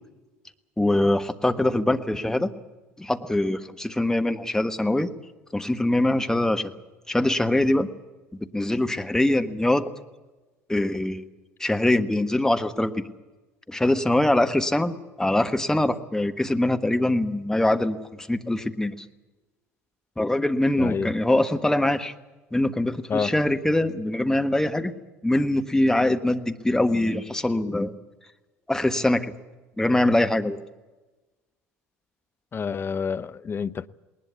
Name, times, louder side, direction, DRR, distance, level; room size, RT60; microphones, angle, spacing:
voice 1, 0.8-2.5 3.0-5.1 5.5-6.7 7.1-7.9 8.4-10.0 10.7-11.3 11.6-13.1 13.7-18.0 18.3-18.9 20.2-22.1 22.5-24.9 25.2-27.9 28.7-29.3 29.8-30.6, left 1 dB, 5° left, 1.5 m, -23 dB
voice 2, 20.8-21.1 23.1-23.3 32.5-33.9, left 6 dB, 30° left, 0.7 m, -28 dB
20.0 x 19.5 x 8.4 m
figure-of-eight pair, 65°, 8 cm